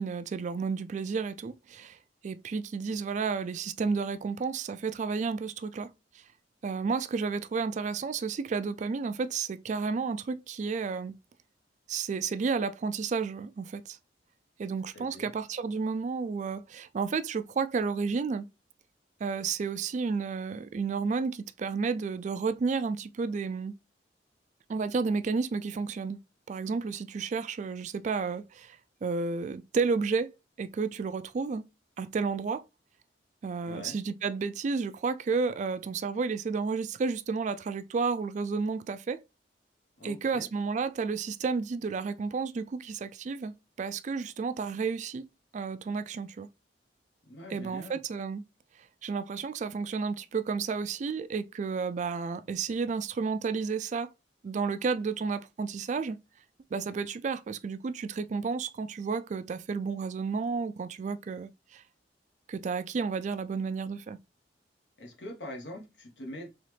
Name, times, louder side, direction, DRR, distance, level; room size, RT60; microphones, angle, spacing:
voice 1, 0.0-2.0 2.2-5.9 6.6-11.2 11.9-14.0 14.6-18.5 19.2-23.7 24.7-26.2 26.5-30.3 30.6-31.7 32.0-32.6 33.4-39.2 40.0-45.3 45.5-46.5 47.5-48.4 49.0-54.1 54.4-56.2 56.7-61.8 62.5-64.2, right 5 dB, 40° right, 0.3 m, -31 dB
voice 2, 14.9-15.3 33.6-34.0 40.0-40.5 47.2-48.0 65.0-66.5, left 1 dB, 85° left, 1.4 m, -43 dB
4.0 x 3.1 x 3.3 m
head